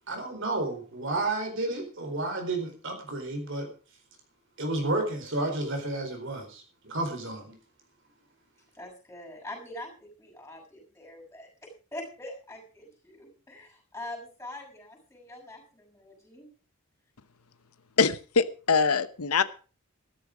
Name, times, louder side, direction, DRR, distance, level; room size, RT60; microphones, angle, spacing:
voice 1, 0.1-3.7 4.6-7.6, right 2 dB, 55° right, 4 dB, 4.3 m, -31 dB
voice 2, 8.7-11.5 11.9-16.5, left 1 dB, 10° left, 2 dB, 6.5 m, -43 dB
voice 3, 18.0-19.4, left 5 dB, 90° left, 14 dB, 0.9 m, -23 dB
13.5 x 13.0 x 5.0 m, 0.37 s
head